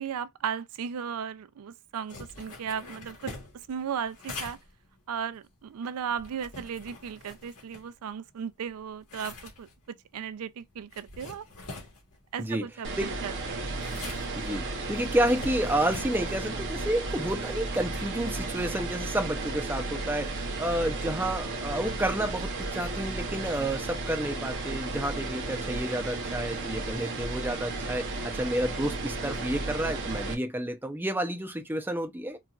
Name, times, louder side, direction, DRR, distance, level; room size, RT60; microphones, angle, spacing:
voice 1, 0.0-4.6 5.1-11.5 12.3-13.7 20.8-21.4, right 7 dB, 75° right, 0.4 m, -36 dB
sound 1, 2.1-8.3 8.7-20.3, left 3 dB, 85° left, 1.4 m, -46 dB
sound 2, 12.8-30.3, right 3 dB, 55° right, 0.8 m, -34 dB
voice 2, 14.4-32.4, right 1 dB, 10° right, 0.5 m, -30 dB
4.1 x 2.3 x 2.3 m
head